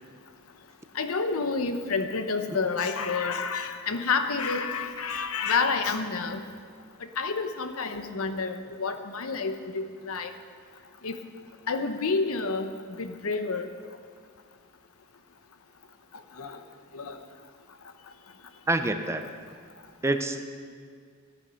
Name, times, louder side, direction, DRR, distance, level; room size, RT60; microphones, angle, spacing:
voice 1, 0.9-6.4 7.2-10.3 11.0-11.2 11.7-12.7 13.0-13.7 16.4-16.6 16.9-17.2, left 4 dB, 90° left, 8 dB, 0.9 m, -29 dB
voice 2, 18.7-19.2 20.0-20.4, right 2 dB, 15° right, 7 dB, 0.6 m, -26 dB
13.5 x 9.7 x 5.7 m, 2.1 s
head